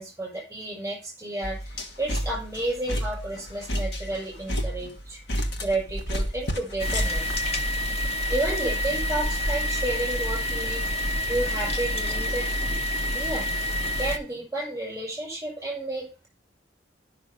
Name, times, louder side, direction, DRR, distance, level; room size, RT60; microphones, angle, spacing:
voice 1, 0.0-7.3 8.3-10.9 11.3-12.5 13.1-13.5 14.0-16.3, right 1 dB, 10° right, -2 dB, 6.2 m, -31 dB
sound 1, 1.4-7.4, equal, 60° left, 1.4 m, -31 dB
sound 2, 6.8-14.2, equal, 35° left, 1.0 m, -27 dB
10.5 x 5.9 x 5.5 m, 0.33 s
head